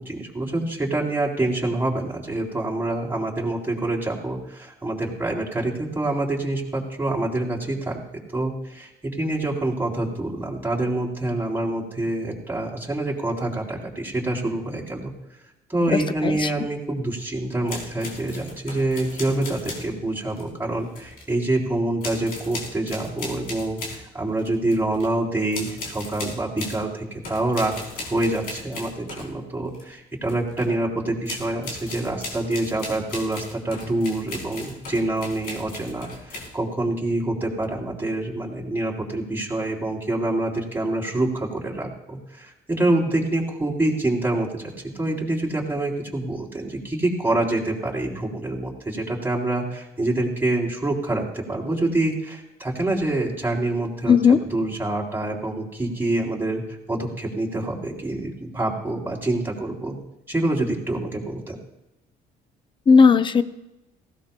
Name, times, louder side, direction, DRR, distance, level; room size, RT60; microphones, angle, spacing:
voice 1, 0.0-8.0 8.3-15.1 15.7-27.7 28.0-44.6 44.9-54.2 54.5-60.0 60.3-61.6, right 2 dB, 10° right, -3 dB, 3.8 m, -26 dB
voice 2, 15.9-16.5 54.1-54.4 62.9-63.4, left 5 dB, 30° left, 12 dB, 0.7 m, -16 dB
sound 1, 17.7-19.9 20.3-21.3 22.0-24.1 24.4-25.1 25.5-26.8 27.2-29.8 30.3-30.7 31.2-36.5, left 2 dB, 60° left, 4.1 m, -37 dB
19.0 x 16.5 x 2.3 m, 0.94 s
cardioid pair, 95°, 17 cm